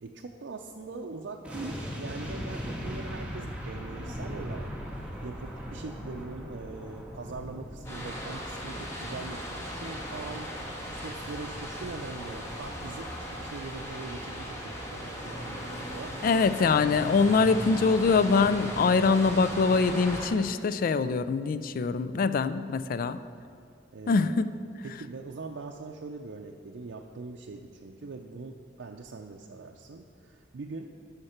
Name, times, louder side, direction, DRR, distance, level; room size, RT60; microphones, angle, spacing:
voice 1, 0.0-4.7 5.2-10.5 10.9-16.1 23.9-24.5 24.8-30.9, right 3 dB, 85° right, 1 dB, 0.5 m, -42 dB
sound 1, 1.4-14.6 14.9-15.0, equal, 5° right, 1.3 m, -41 dB
sound 2, 7.8-20.3, equal, 15° left, 1.5 m, -38 dB
voice 2, 16.2-23.2 24.1-24.5, left 4 dB, 50° left, 13 dB, 0.3 m, -24 dB
13.0 x 5.8 x 4.4 m, 2.5 s
head